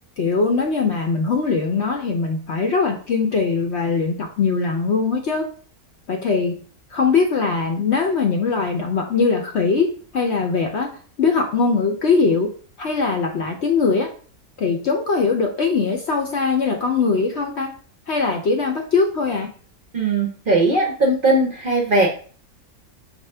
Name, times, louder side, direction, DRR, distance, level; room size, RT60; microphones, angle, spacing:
voice 1, 0.2-5.5 6.1-6.6 6.9-10.9 11.2-12.5 12.8-14.1 14.6-17.7 18.1-19.5, left 4 dB, 60° left, 3 dB, 0.8 m, -21 dB
voice 2, 19.9-22.1, right 2 dB, 50° right, -1 dB, 0.7 m, -19 dB
5.1 x 2.7 x 3.3 m, 0.43 s
omnidirectional pair, 1.6 m